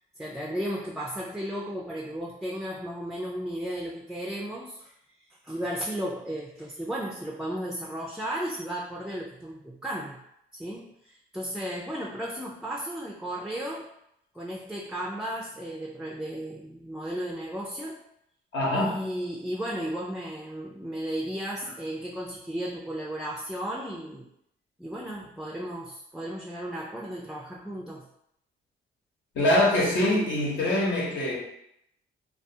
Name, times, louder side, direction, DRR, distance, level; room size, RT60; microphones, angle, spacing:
voice 1, 0.2-4.9 5.4-10.2 10.5-13.9 14.3-18.0 18.7-24.3 24.8-28.1, equal, ahead, -3 dB, 0.3 m, -34 dB
voice 2, 18.5-18.9 29.3-31.4, left 1 dB, 70° left, -4 dB, 1.0 m, -24 dB
2.3 x 2.3 x 2.7 m, 0.78 s
cardioid pair, 90°, 20 cm